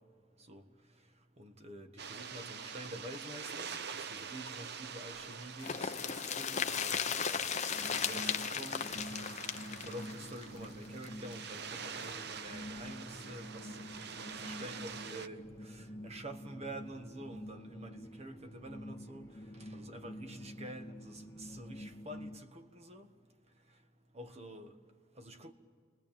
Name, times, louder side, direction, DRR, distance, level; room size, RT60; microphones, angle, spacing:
voice 1, 1.4-7.4 7.9-9.1 9.7-13.8 14.1-19.3 19.6-23.1 24.1-24.8 25.2-25.5, right 1 dB, 35° right, 1.5 m, -48 dB
sound 1, 2.0-15.3, right 6 dB, 60° right, 0.9 m, -45 dB
sound 2, 5.6-11.3 11.6-11.7 12.0-12.1, left 7 dB, 35° left, 0.8 m, -36 dB
sound 3, 7.7-22.4, equal, 20° left, 2.1 m, -48 dB
29.5 x 20.0 x 8.9 m
head